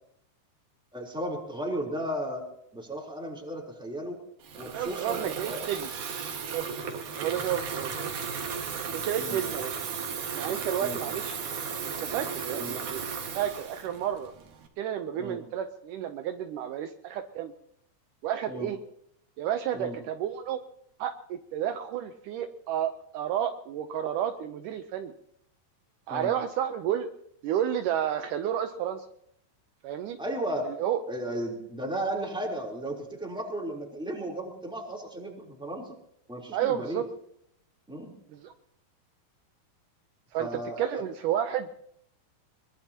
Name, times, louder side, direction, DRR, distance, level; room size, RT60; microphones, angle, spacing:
voice 1, 0.9-2.4 2.7-4.2 4.6-5.2 5.5-5.6 9.1-9.4 10.8-11.0 12.6-12.8 15.2-15.4 18.5-18.7 19.7-20.0 26.1-26.3 30.2-30.7 31.1-36.0 36.3-37.0 37.9-38.1 40.4-41.0, right 1 dB, ahead, -1 dB, 2.9 m, -34 dB
Water tap faucet / Fill (with liquid), 4.4-14.7, right 6 dB, 55° right, 2.9 m, -35 dB
voice 2, 4.7-5.9 6.5-6.7 7.2-8.0 8.9-9.7 10.3-11.4 11.8-14.3 14.8-17.5 18.2-18.8 19.4-20.6 21.0-25.1 26.1-27.1 27.4-29.1 29.8-30.2 30.7-31.0 36.5-37.0 38.3-38.5 40.3-40.5 40.8-41.7, right 10 dB, 85° right, 7 dB, 1.8 m, -31 dB
23.0 x 22.0 x 2.9 m, 0.71 s
omnidirectional pair, 4.7 m